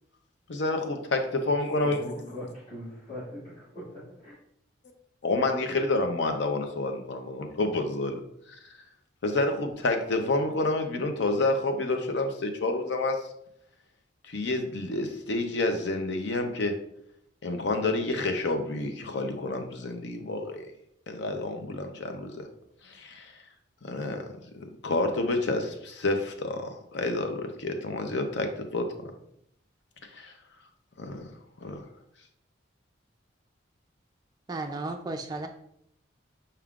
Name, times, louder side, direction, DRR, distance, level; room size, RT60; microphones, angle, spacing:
voice 1, 0.5-2.3 5.2-8.2 8.5-8.6 9.2-13.3 14.2-16.7 17.4-20.7 21.1-22.5 22.8-23.3 23.8-24.3 24.5-28.9 30.1-30.3 31.0-31.3 31.6-31.8, left 2 dB, 65° left, 5 dB, 0.6 m, -29 dB
voice 2, 1.8-4.3, left 1 dB, 40° left, -10 dB, 1.2 m, -41 dB
voice 3, 34.5-35.5, right 2 dB, 20° right, 4 dB, 0.3 m, -34 dB
5.6 x 3.6 x 2.4 m, 0.73 s
head